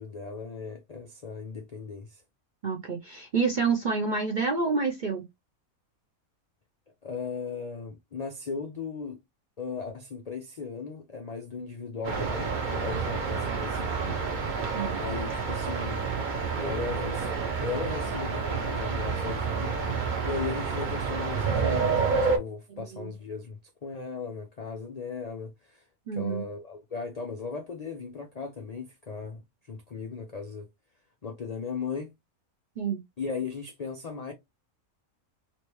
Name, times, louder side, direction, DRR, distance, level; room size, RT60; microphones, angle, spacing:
voice 1, 0.0-2.2 7.0-9.2 9.6-14.2 15.0-16.0 16.6-19.8 20.2-25.8 26.1-30.7 31.2-32.1 33.2-34.3, left 5 dB, 65° left, 0.3 m, -37 dB
voice 2, 2.6-5.2 14.7-15.0 22.9-23.1 26.1-26.4 32.8-33.0, right 4 dB, 65° right, 0.4 m, -28 dB
sound 1, 12.0-22.4, right 5 dB, 45° right, 0.8 m, -29 dB
3.2 x 3.0 x 3.0 m
omnidirectional pair, 1.5 m